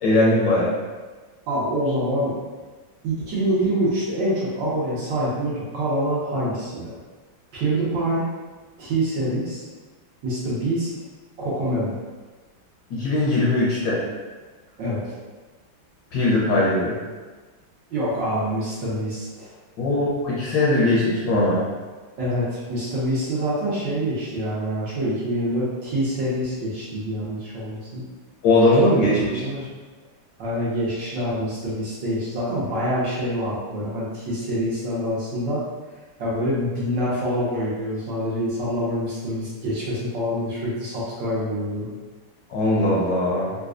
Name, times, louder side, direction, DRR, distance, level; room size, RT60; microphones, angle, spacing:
voice 1, 0.0-0.7 12.9-14.0 16.1-16.9 19.8-21.6 28.4-29.4 42.5-43.5, left 1 dB, 70° left, -6 dB, 1.2 m, -20 dB
voice 2, 1.5-2.3 3.0-6.9 7.5-8.3 8.8-9.6 10.2-10.9 11.4-11.9 14.8-15.2 17.9-19.6 22.2-28.0 29.0-29.7 30.4-35.7 36.2-41.9, equal, 65° right, -8 dB, 1.4 m, -26 dB
4.1 x 2.3 x 2.4 m, 1.3 s
omnidirectional pair, 2.3 m